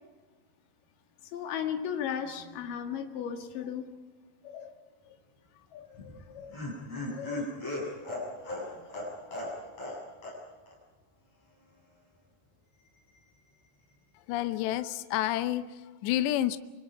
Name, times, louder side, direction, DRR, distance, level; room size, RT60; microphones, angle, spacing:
voice 1, 1.3-3.9 4.4-4.7 5.1-5.2 5.7-6.6 7.0-7.9 8.7-8.9, left 8 dB, 55° left, 4 dB, 2.9 m, -37 dB
Laughter, 5.9-10.0 10.2-10.4 10.7-10.8, left 1 dB, 35° left, 7.7 m, -36 dB
voice 2, 14.1-16.6, left 13 dB, 75° left, 10 dB, 2.8 m, -30 dB
28.0 x 25.0 x 5.0 m, 1.3 s
omnidirectional pair, 5.5 m